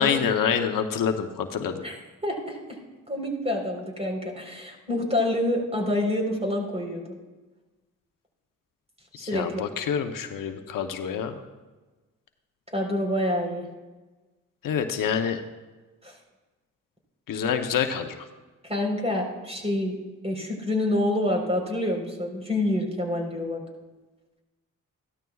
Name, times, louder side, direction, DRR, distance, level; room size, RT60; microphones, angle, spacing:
voice 1, 0.0-1.8 9.2-11.3 14.6-15.4 17.3-18.2, left 7 dB, 80° left, 7 dB, 0.9 m, -26 dB
voice 2, 2.2-2.8 3.1-7.0 9.2-9.6 12.7-13.7 16.0-16.2 18.6-20.0 20.2-23.7, left 1 dB, 20° right, 1 dB, 4.1 m, -27 dB
15.5 x 12.5 x 2.4 m, 1.2 s
cardioid pair, 55°, 33 cm